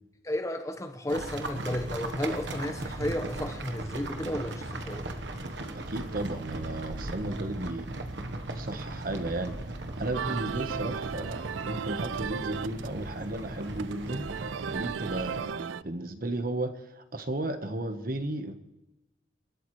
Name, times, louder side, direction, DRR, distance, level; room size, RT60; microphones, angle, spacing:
voice 1, 0.2-5.0, left 1 dB, 15° left, 7 dB, 1.1 m, -33 dB
sound 1, 1.1-15.4, right 2 dB, 65° right, 1.2 m, -37 dB
voice 2, 5.7-7.9 8.5-9.6 10.0-14.3 14.7-18.5, right 2 dB, 50° right, 8 dB, 1.3 m, -34 dB
sound 2, 10.1-15.8, right 7 dB, 90° right, 0.4 m, -36 dB
27.0 x 13.0 x 3.2 m, 0.97 s
head